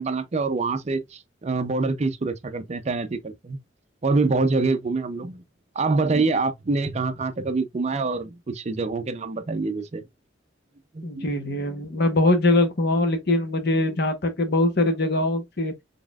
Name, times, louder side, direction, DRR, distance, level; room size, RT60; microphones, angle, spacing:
voice 1, 0.0-3.6 4.0-5.4 5.8-10.0 10.9-11.3, right 3 dB, 35° right, 0.5 m, -25 dB
voice 2, 11.0-15.7, left 2 dB, 60° left, 1.0 m, -22 dB
4.1 x 3.5 x 2.3 m
head